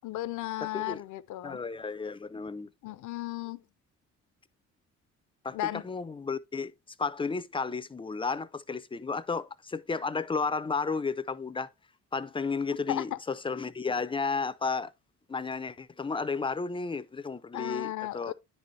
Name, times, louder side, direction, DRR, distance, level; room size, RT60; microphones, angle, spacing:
voice 1, 0.0-1.6 2.8-3.6 5.5-5.8 12.9-13.2 17.5-18.3, left 15 dB, 75° left, 0.6 m, -35 dB
voice 2, 0.6-1.0 1.4-2.7 5.4-6.7 7.0-11.7 12.1-14.9 15.3-18.3, left 4 dB, 15° left, 0.4 m, -33 dB
9.6 x 4.1 x 3.1 m
cardioid pair, 90°, 30 cm